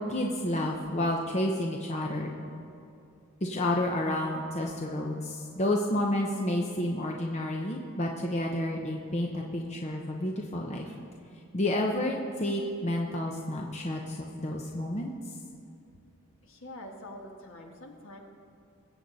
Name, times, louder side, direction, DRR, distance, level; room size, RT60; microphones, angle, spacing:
voice 1, 0.0-2.3 3.4-10.9 11.5-15.1, left 1 dB, 30° left, 0 dB, 0.8 m, -30 dB
voice 2, 16.4-18.2, left 1 dB, 65° left, 1 dB, 1.7 m, -45 dB
21.5 x 8.2 x 4.1 m, 2.7 s
head